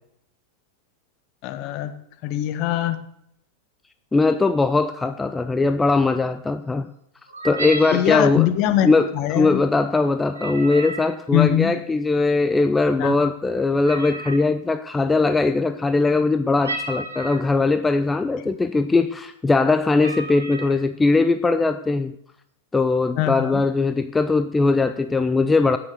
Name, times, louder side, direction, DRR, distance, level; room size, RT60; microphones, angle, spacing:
voice 1, 1.4-1.9 2.2-3.0 7.9-9.6 11.3-11.7 13.0-13.2 23.2-23.6, left 13 dB, 40° left, 9 dB, 1.3 m, -22 dB
voice 2, 4.1-6.9 7.4-8.5 8.8-22.1 22.7-25.8, left 3 dB, 10° left, 9 dB, 0.6 m, -20 dB
sound 1, 7.3-8.1 10.3-11.1 13.8-14.4 16.6-17.5 18.3-18.4 18.7-19.0 19.6-19.7 20.0-20.8, right 2 dB, 75° right, 2.5 m, -32 dB
16.5 x 6.8 x 6.6 m, 0.74 s
figure-of-eight pair, 90°, 0 cm